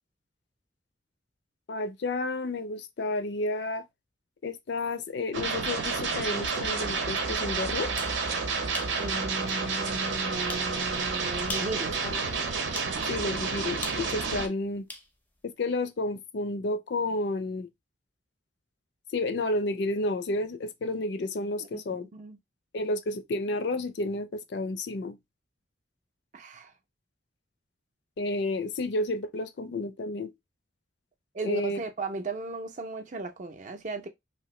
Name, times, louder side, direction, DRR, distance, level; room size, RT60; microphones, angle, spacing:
voice 1, 1.7-3.8 4.4-7.9 12.0-12.2 13.1-14.9 15.4-17.7 19.1-22.1 22.7-25.2 28.2-30.3 31.4-31.8, left 2 dB, 65° left, 0.4 m, -31 dB
sound 1, 5.3-14.5, right 4 dB, 85° right, 0.8 m, -30 dB
sound 2, 7.7-8.2 8.7-9.0 9.5-9.6 10.5-10.7 11.4-11.8 12.7-13.0 13.8-15.1, left 2 dB, 10° left, 0.5 m, -38 dB
voice 2, 9.0-11.9 12.8-13.0 21.6-22.4 26.3-26.7 31.3-34.1, right 2 dB, 40° right, 0.5 m, -36 dB
2.9 x 2.6 x 3.0 m
head